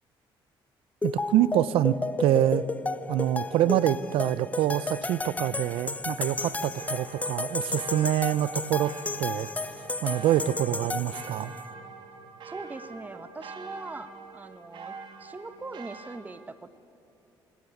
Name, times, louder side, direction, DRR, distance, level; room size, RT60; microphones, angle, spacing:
sound 1, 1.0-11.6, left 3 dB, 15° left, 0.8 m, -33 dB
voice 1, 1.0-2.6 3.1-8.9 9.2-9.5 10.0-11.5, right 12 dB, 85° right, 18 dB, 0.6 m, -26 dB
batignolles bells, 6.8-16.2, right 4 dB, 55° right, 2.4 m, -45 dB
voice 2, 12.4-16.7, right 3 dB, 20° right, 11 dB, 1.1 m, -41 dB
21.0 x 18.0 x 9.9 m, 2.6 s
cardioid pair, 115°, 9 cm